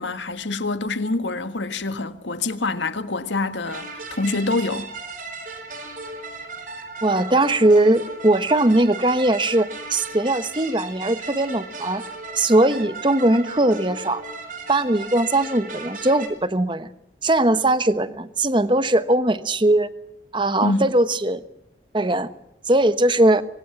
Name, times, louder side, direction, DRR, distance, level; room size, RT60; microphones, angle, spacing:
voice 1, 0.0-4.9 20.6-20.8, left 3 dB, 80° left, 1.7 m, -26 dB
sound 1, 3.6-16.3, right 3 dB, 45° right, 4.7 m, -36 dB
voice 2, 7.0-12.0 12.4-14.2 14.7-16.9 17.2-19.9 20.3-21.4 21.9-22.3 22.6-23.4, right 1 dB, 25° right, 1.1 m, -20 dB
26.0 x 23.5 x 6.0 m
head